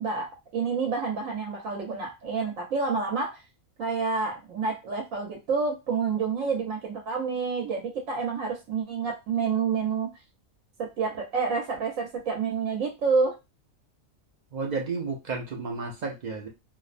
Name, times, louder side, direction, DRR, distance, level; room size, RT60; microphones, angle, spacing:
voice 1, 0.0-3.4 3.8-10.1 11.0-13.3, right 5 dB, 85° right, 1 dB, 1.1 m, -28 dB
voice 2, 14.5-16.5, right 4 dB, 55° right, 1 dB, 0.5 m, -32 dB
2.8 x 2.0 x 2.5 m, 0.24 s
omnidirectional pair, 1.3 m